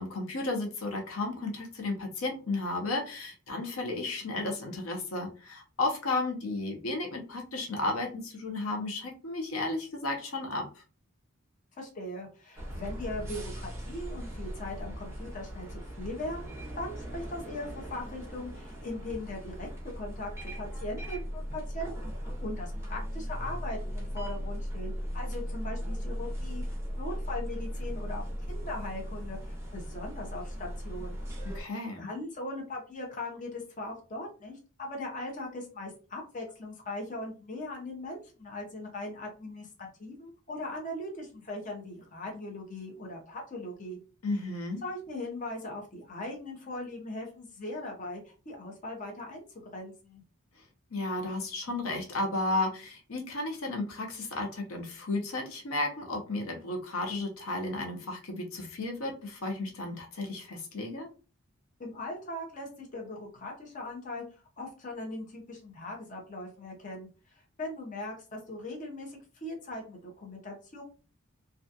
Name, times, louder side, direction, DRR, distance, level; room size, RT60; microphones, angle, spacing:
voice 1, 0.0-10.7 31.5-32.1 44.2-44.8 50.9-61.1, left 2 dB, 85° left, 3 dB, 0.6 m, -33 dB
voice 2, 11.7-19.7 20.0-31.2 31.6-31.7 32.0-44.0 44.8-49.4 49.7-50.2 61.8-64.2 64.6-70.8, left 1 dB, 35° left, 0 dB, 0.6 m, -40 dB
sound 1, 12.5-31.6, equal, 10° right, 0.5 m, -38 dB
2.3 x 2.2 x 2.6 m, 0.35 s
head